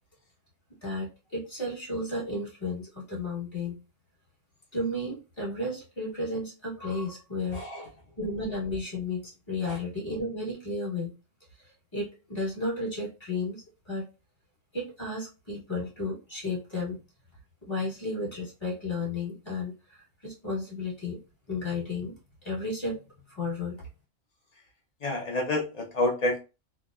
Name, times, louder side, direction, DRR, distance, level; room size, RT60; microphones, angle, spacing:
voice 1, 0.8-3.8 4.7-7.6 8.2-11.1 11.9-14.1 14.7-17.0 17.6-21.2 21.5-22.1 22.4-23.0 23.4-23.8, left 2 dB, 25° left, 1.2 m, -33 dB
voice 2, 7.5-7.9 9.6-9.8 25.0-26.4, left 1 dB, 55° left, 0.4 m, -29 dB
2.9 x 2.1 x 2.2 m
omnidirectional pair, 1.3 m